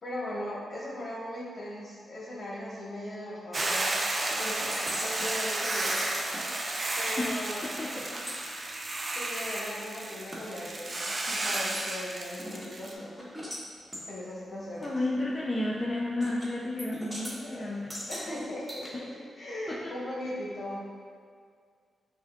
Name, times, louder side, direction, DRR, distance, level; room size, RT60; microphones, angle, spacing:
voice 1, 0.0-3.9 4.3-6.1 6.4-6.5 7.0-7.6 9.1-13.3 14.1-14.9 17.3-17.8 18.1-19.1 19.4-20.9, left 1 dB, 55° left, -6 dB, 1.2 m, -39 dB
Hiss / Boiling, 3.5-12.9, right 2 dB, 40° right, 0.4 m, -32 dB
sound 1, 4.7-7.2 7.4-10.4 10.9-11.0 11.3-11.9 12.4-13.6 13.9-14.1 14.8-14.9 16.2-16.5 16.8-17.4 17.9-18.9, equal, 10° right, 1.2 m, -41 dB
voice 2, 7.2-8.2 8.6-8.9 14.8-17.9 19.8-19.9, left 1 dB, 30° left, -6 dB, 0.6 m, -32 dB
6.0 x 2.2 x 2.3 m, 2.1 s
supercardioid pair, 40°, 0 cm